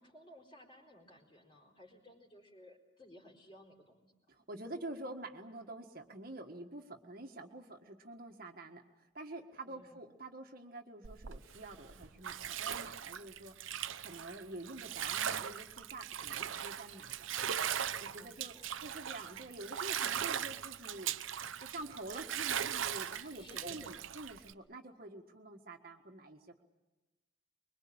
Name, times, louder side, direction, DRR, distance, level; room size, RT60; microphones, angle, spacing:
voice 1, 0.0-4.1 9.6-10.1 17.9-18.8 23.1-24.1, left 1 dB, 25° left, 1 dB, 4.3 m, -57 dB
voice 2, 4.3-18.5 18.8-21.1 21.6-26.6, right 2 dB, 45° right, 4 dB, 1.7 m, -48 dB
Bathtub (filling or washing), 11.0-24.5, right 9 dB, 75° right, 0.8 m, -39 dB
24.5 x 22.5 x 8.8 m, 1.1 s
head